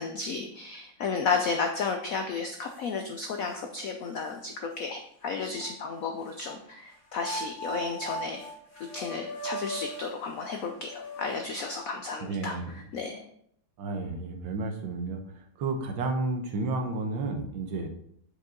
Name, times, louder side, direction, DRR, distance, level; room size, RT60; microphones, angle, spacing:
voice 1, 0.0-8.5 8.8-13.2, left 4 dB, 80° left, 5 dB, 0.7 m, -33 dB
sound 1, 2.1-2.2 2.7-3.6 4.2-4.3 5.4-6.6 7.1-12.1, equal, 65° left, 3.5 m, -40 dB
voice 2, 12.2-12.7 13.8-15.2 15.6-17.9, right 3 dB, 70° right, 4 dB, 1.7 m, -31 dB
6.6 x 5.2 x 3.8 m, 0.69 s
omnidirectional pair, 2.2 m